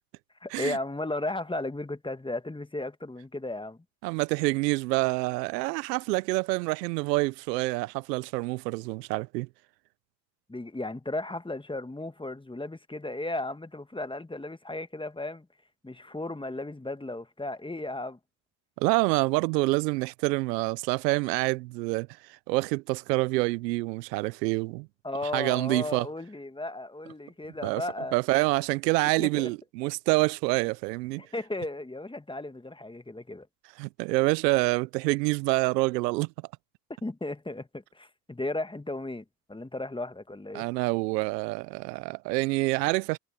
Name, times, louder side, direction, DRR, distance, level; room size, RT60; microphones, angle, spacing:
voice 1, 0.4-3.8 10.5-15.5 15.8-18.2 25.0-28.1 29.2-29.5 31.2-33.5 37.0-40.7, left 2 dB, 10° left, 1.6 m, -35 dB
voice 2, 4.0-9.5 18.8-24.9 25.3-26.1 27.6-27.8 28.1-31.2 33.8-36.3 40.5-43.2, right 23 dB, 85° right, 0.8 m, -27 dB
hypercardioid pair, 55°, 47 cm